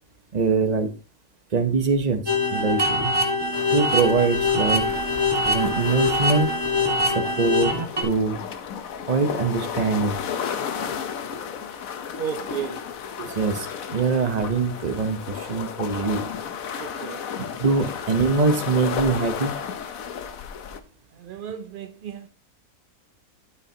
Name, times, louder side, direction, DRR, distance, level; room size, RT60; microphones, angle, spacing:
voice 1, 0.3-1.0 1.5-3.1 3.7-4.9 5.4-6.5 7.0-8.4 9.1-10.2 13.2-16.3 16.8-16.9 17.4-19.5, right 4 dB, 35° right, 0.8 m, -23 dB
sound 1, 2.3-8.0, left 2 dB, 15° right, 1.5 m, -23 dB
sound 2, 3.5-20.8, left 7 dB, 65° left, 1.2 m, -33 dB
voice 2, 12.2-12.9 16.7-17.2 21.2-22.3, right 8 dB, 70° right, 0.5 m, -33 dB
13.0 x 6.4 x 2.8 m
omnidirectional pair, 1.6 m